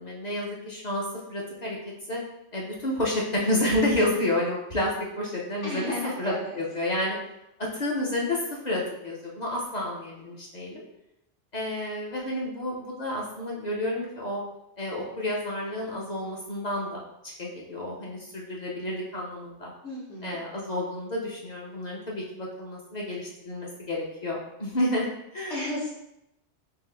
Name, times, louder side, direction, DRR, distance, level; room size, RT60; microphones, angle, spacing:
voice 1, 0.0-1.8 2.1-2.2 2.5-4.9 5.2-5.9 6.2-7.2 7.6-10.8 11.5-14.4 14.8-19.7 20.2-25.1 25.3-25.5, left 1 dB, 45° left, -4 dB, 0.6 m, -30 dB
voice 2, 5.6-6.6 19.8-20.4 25.5-25.9, left 1 dB, 70° left, -8 dB, 1.3 m, -34 dB
3.6 x 2.5 x 3.3 m, 0.86 s
omnidirectional pair, 1.2 m